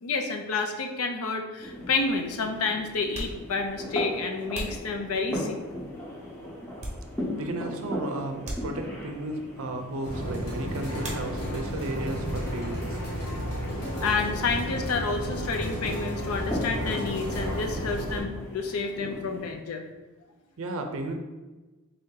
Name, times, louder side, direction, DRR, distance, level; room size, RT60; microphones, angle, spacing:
voice 1, 0.0-5.6 14.0-19.8, left 4 dB, 70° left, 5 dB, 0.5 m, -29 dB
sound 1, 1.6-19.5, left 1 dB, 10° left, 0.8 m, -39 dB
sound 2, 3.1-5.6 6.1-7.5 7.8-7.9 8.4-9.2 11.0-11.8 12.0-12.7 13.0-15.2, right 1 dB, 30° right, 0.7 m, -42 dB
voice 2, 7.3-13.0 20.6-21.1, right 2 dB, 65° right, 5 dB, 0.5 m, -34 dB
sound 3, 10.0-18.2, equal, 85° left, 1.4 m, -32 dB
3.3 x 2.7 x 3.7 m, 1.2 s
head